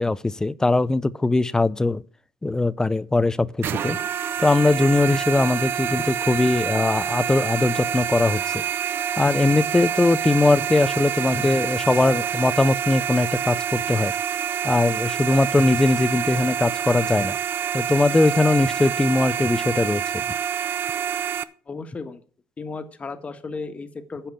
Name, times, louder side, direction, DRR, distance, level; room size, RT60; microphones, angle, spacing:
voice 1, 0.0-2.0 2.4-4.0 4.4-8.6 9.2-14.1 14.6-17.4 17.7-20.0, left 2 dB, 15° left, 0.6 m, -20 dB
sound 1, 3.6-21.4, right 8 dB, 50° right, 0.7 m, -27 dB
voice 2, 21.7-22.2 22.6-24.3, left 4 dB, 30° left, 1.6 m, -34 dB
10.0 x 5.8 x 8.4 m
supercardioid pair, 80°, 5 cm